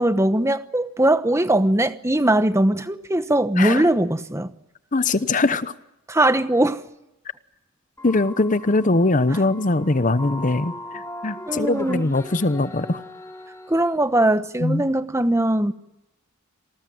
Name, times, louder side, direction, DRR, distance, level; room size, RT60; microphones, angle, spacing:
voice 1, 0.0-4.5 6.1-6.8 9.3-9.4 11.5-12.1 13.7-15.7, right 1 dB, 15° right, 1.0 m, -20 dB
voice 2, 4.9-5.7 8.0-13.0 14.6-14.9, left 2 dB, 35° left, 0.9 m, -21 dB
sound 1, 8.0-14.0, left 1 dB, 15° left, 2.7 m, -39 dB
28.0 x 19.5 x 9.4 m
head